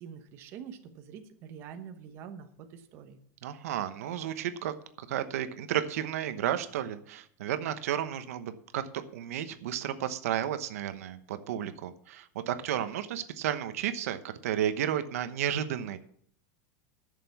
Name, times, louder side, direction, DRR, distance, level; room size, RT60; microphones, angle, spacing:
voice 1, 0.0-3.2, right 7 dB, 30° right, 6 dB, 1.0 m, -45 dB
voice 2, 3.4-16.0, right 10 dB, 90° right, 10 dB, 1.0 m, -32 dB
11.0 x 6.8 x 7.0 m, 0.62 s
supercardioid pair, 175°, 8 cm